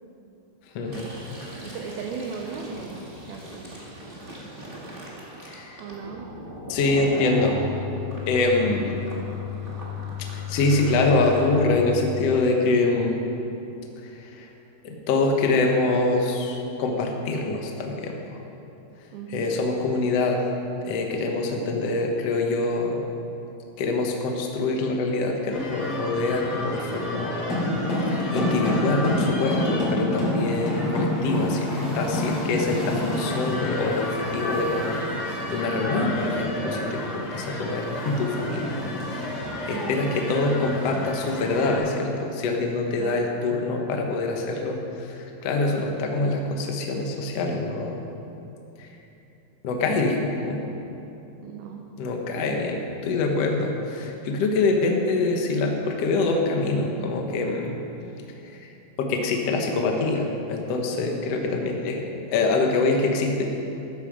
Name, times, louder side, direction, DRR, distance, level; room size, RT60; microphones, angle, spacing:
Fill (with liquid), 0.8-7.6 8.1-11.4, right 1 dB, 45° right, 0.6 m, -39 dB
voice 1, 1.6-3.7 5.8-6.3 19.1-19.6 39.7-40.1 43.0-43.3 51.4-51.9, right 6 dB, 75° right, 1 dB, 2.3 m, -37 dB
voice 2, 5.4-5.8 6.7-7.6 8.3-9.0 10.3-13.2 14.0-14.5 14.8-18.4 19.3-20.4 20.8-23.0 23.8-27.7 28.1-38.8 39.1-39.4 39.7-48.0 48.8-48.9 49.6-50.6 52.0-57.7 59.0-63.4, left 3 dB, 80° left, 2 dB, 1.4 m, -25 dB
sound 1, 7.4-12.3, left 10 dB, 60° left, 3.1 m, -34 dB
sound 2, 25.5-41.8, left 1 dB, 40° left, 3.5 m, -28 dB
14.0 x 12.5 x 5.0 m, 2.9 s
omnidirectional pair, 5.0 m